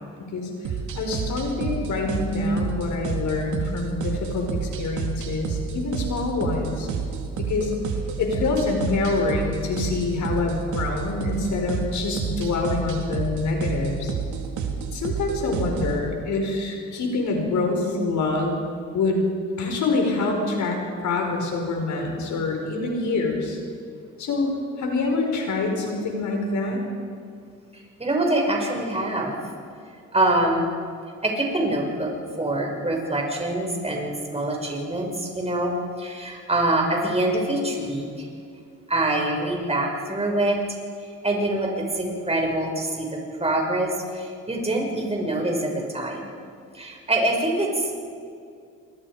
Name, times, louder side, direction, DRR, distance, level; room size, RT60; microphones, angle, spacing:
voice 1, 0.2-6.9 7.4-7.8 8.2-14.1 14.9-18.6 18.9-19.2 19.6-23.6 24.2-24.5 24.8-26.8, left 3 dB, 70° left, 2 dB, 5.4 m, -26 dB
sound 1, 0.6-16.0, right 6 dB, 75° right, 2.9 m, -30 dB
voice 2, 27.7-29.3 30.1-30.7 31.2-32.1 32.4-35.7 36.0-38.3 38.9-40.6 41.2-46.3 46.7-48.0, right 1 dB, 20° right, 0 dB, 6.3 m, -25 dB
28.0 x 22.0 x 5.2 m, 2.3 s
cardioid pair, 90°, 30 cm